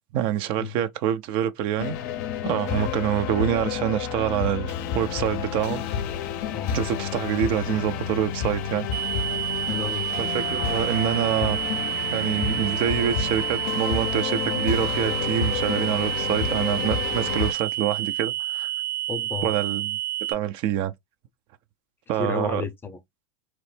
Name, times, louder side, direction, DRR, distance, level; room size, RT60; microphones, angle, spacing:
voice 1, 0.1-2.0 2.4-5.8 6.7-8.9 10.2-11.6 12.1-18.7 19.4-20.0 20.3-20.9 22.1-22.6, right 11 dB, 50° right, 0.5 m, -26 dB
sound 1, 1.8-17.5, left 7 dB, 65° left, 0.6 m, -29 dB
voice 2, 6.5-6.8 9.6-10.0 19.1-19.6 22.1-23.0, left 6 dB, 20° left, 0.6 m, -32 dB
sound 2, 8.9-20.3, right 13 dB, 65° right, 1.3 m, -29 dB
2.9 x 2.0 x 3.3 m
hypercardioid pair, 100°, 11 cm